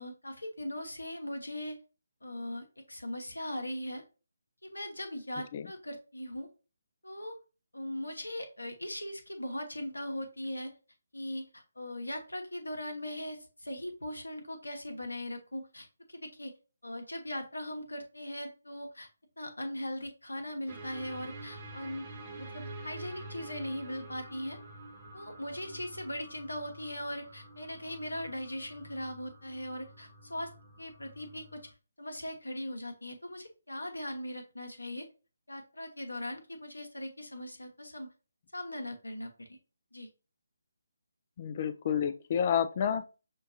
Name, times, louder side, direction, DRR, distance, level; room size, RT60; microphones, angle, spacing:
voice 1, 0.0-1.8 2.2-4.0 4.6-6.5 7.0-7.4 7.7-10.7 11.1-16.5 16.8-19.1 19.4-22.1 22.4-24.6 25.1-30.5 30.8-31.6 32.0-35.1 35.5-38.1 38.5-39.6 39.9-40.1, left 1 dB, 80° left, 0.9 m, -39 dB
sound 1, 20.7-31.7, right 2 dB, 25° right, 0.9 m, -48 dB
voice 2, 41.4-43.0, left 8 dB, 35° left, 0.4 m, -29 dB
6.2 x 2.3 x 2.7 m
figure-of-eight pair, 145°, 0 cm